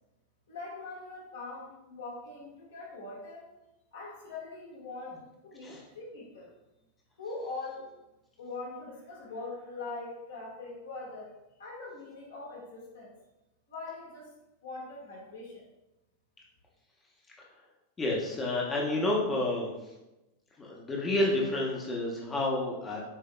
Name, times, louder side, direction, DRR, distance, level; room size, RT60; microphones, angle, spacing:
voice 1, 0.5-3.5 3.9-6.5 7.2-7.9 8.4-11.3 11.6-13.1 13.7-14.3 14.6-15.6, left 3 dB, 70° left, -4 dB, 1.4 m, -42 dB
voice 2, 18.0-19.7 20.6-23.0, left 1 dB, 20° left, -3 dB, 0.9 m, -29 dB
8.0 x 2.8 x 2.2 m, 0.97 s
figure-of-eight pair, 90°, 0 cm